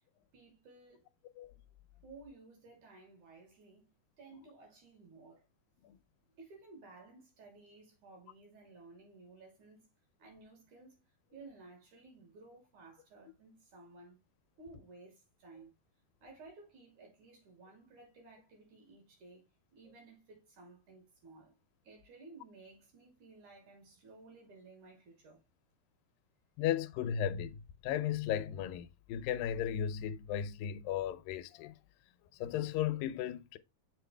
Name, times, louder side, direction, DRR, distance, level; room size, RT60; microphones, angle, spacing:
voice 1, 0.3-1.1 2.0-5.5 6.3-9.9 10.2-14.2 14.6-15.7 16.2-19.4 19.7-21.5 21.8-25.4, right 3 dB, 60° right, 4.5 m, -56 dB
voice 2, 26.6-31.7 32.3-33.6, left 10 dB, 85° left, 2.4 m, -35 dB
7.6 x 6.2 x 3.3 m
omnidirectional pair, 4.0 m